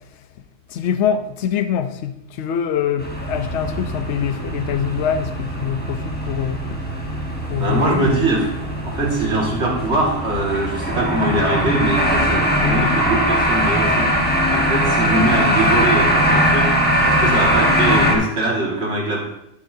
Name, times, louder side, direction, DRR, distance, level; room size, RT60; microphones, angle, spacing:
voice 1, 0.7-6.8 7.5-8.1, left 8 dB, 70° left, 0.9 m, -24 dB
sound 1, 3.0-18.1, equal, 10° left, 1.5 m, -20 dB
voice 2, 7.6-8.5 8.8-14.1 14.5-16.7 17.0-19.2, right 2 dB, 60° right, 2.3 m, -22 dB
11.5 x 8.8 x 2.7 m
omnidirectional pair, 1.3 m